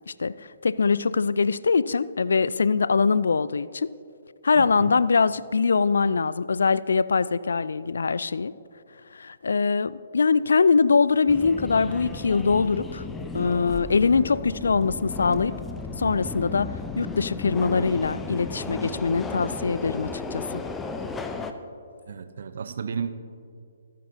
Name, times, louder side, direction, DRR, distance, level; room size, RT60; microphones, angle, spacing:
voice 1, 0.6-3.9 4.4-8.5 9.1-13.0 13.3-15.5 16.0-20.6, left 5 dB, 65° left, 18 dB, 0.3 m, -23 dB
voice 2, 4.6-4.9 22.1-23.1, right 6 dB, 55° right, 11 dB, 0.7 m, -33 dB
Subway metro underground, 11.3-21.5, left 3 dB, 10° left, 0.6 m, -34 dB
26.0 x 9.0 x 2.7 m, 2.4 s
figure-of-eight pair, 130°, 0 cm